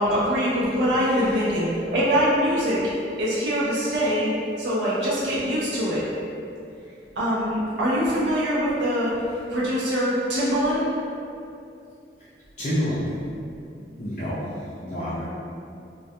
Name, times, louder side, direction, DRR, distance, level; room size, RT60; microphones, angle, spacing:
voice 1, 0.0-2.8 3.2-4.3 4.6-6.0 7.2-9.1 9.5-10.9 13.8-14.0, equal, 85° right, -8 dB, 0.5 m, -23 dB
voice 2, 12.6-13.0 14.0-14.4 14.8-15.3, equal, 40° left, -12 dB, 0.4 m, -27 dB
2.3 x 2.2 x 2.6 m, 2.5 s
head